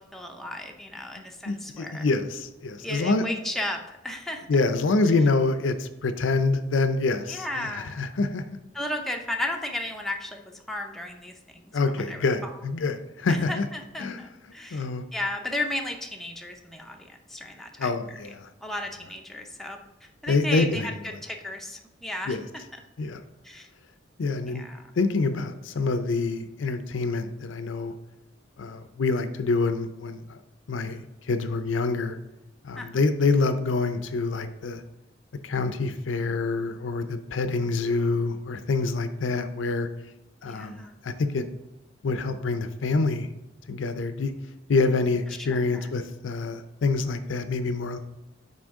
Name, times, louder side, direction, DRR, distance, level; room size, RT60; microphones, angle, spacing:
voice 1, 0.0-2.0 2.8-4.4 7.3-8.0 8.7-11.7 11.9-12.5 13.3-14.9 15.1-17.9 18.6-22.4 23.4-23.7 24.5-24.8 32.8-32.9 40.4-40.9 45.5-45.9, left 1 dB, ahead, 2 dB, 0.5 m, -34 dB
voice 2, 1.4-3.2 4.5-8.4 11.7-13.7 14.0-14.2 14.7-15.0 17.8-18.5 20.3-20.9 22.3-22.4 23.0-23.2 24.2-24.6 25.0-27.9 28.6-30.4 30.7-32.2 32.6-34.8 35.4-39.9 40.4-41.4 42.0-43.3 43.7-44.3 44.7-48.0, left 3 dB, 80° left, 10 dB, 0.5 m, -26 dB
6.2 x 4.3 x 3.6 m, 0.96 s
head